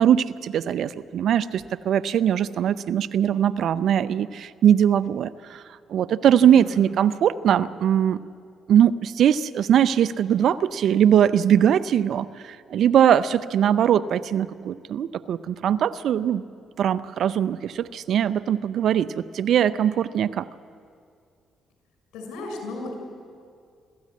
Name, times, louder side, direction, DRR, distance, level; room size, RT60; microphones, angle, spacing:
voice 1, 0.0-5.6 5.9-8.2 8.7-16.4 16.8-20.5, right 9 dB, 70° right, 14 dB, 0.6 m, -21 dB
voice 2, 6.4-6.9 22.1-22.9, left 2 dB, 80° left, 2 dB, 5.8 m, -35 dB
25.5 x 13.5 x 8.5 m, 2.3 s
hypercardioid pair, 50°, 0 cm